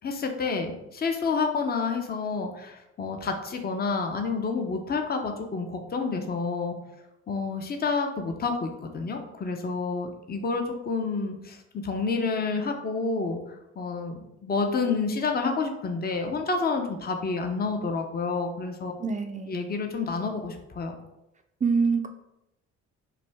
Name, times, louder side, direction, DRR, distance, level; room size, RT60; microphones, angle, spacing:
voice 1, 0.0-6.8 7.3-11.6 11.8-18.9 19.5-21.0, left 4 dB, 30° left, 4 dB, 0.7 m, -29 dB
voice 2, 19.0-19.5 21.6-22.1, right 5 dB, 25° right, 6 dB, 0.4 m, -25 dB
5.8 x 2.2 x 3.4 m, 0.87 s
cardioid pair, 90°, 30 cm